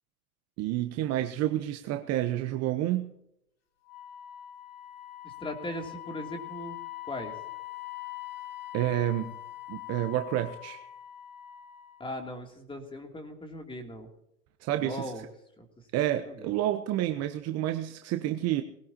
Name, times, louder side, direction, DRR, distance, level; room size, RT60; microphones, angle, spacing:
voice 1, 0.6-3.1 8.7-9.3 9.7-10.8 14.6-15.1 15.9-18.6, right 13 dB, 35° right, 7 dB, 1.1 m, -29 dB
Wind instrument woodwind instrument, 3.9-12.1, left 15 dB, 30° left, 3.5 m, -43 dB
voice 2, 5.2-6.8 7.1-7.4 12.0-14.1 14.8-15.2 15.6-15.7 15.9-16.5, left 1 dB, 10° left, 4 dB, 3.1 m, -39 dB
20.5 x 18.0 x 3.0 m, 0.78 s
hypercardioid pair, 105°, 47 cm